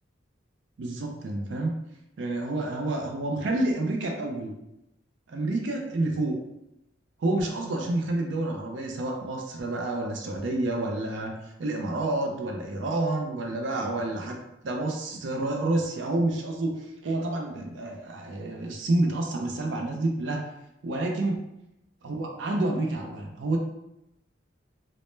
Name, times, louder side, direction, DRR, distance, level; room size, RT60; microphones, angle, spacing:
voice 1, 0.8-1.7 2.2-4.5 5.3-6.4 7.2-11.3 11.6-14.4 14.6-16.8 17.0-20.5 20.8-21.4 22.0-23.6, right 2 dB, 65° right, 1 dB, 0.4 m, -29 dB
2.1 x 2.1 x 3.0 m, 0.87 s
head